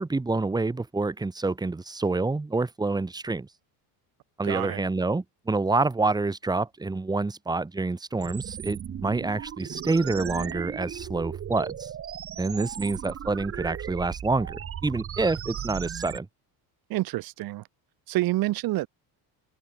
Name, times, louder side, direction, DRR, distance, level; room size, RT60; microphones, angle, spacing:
voice 1, 0.0-3.5 4.4-11.9 12.4-16.3, right 3 dB, 10° right, 4.5 m, -27 dB
voice 2, 4.4-4.8 16.9-17.6 18.1-18.9, right 17 dB, 55° right, 5.1 m, -27 dB
sound 1, 8.2-16.2, right 9 dB, 30° right, 6.8 m, -36 dB
cardioid pair, 170°, 42 cm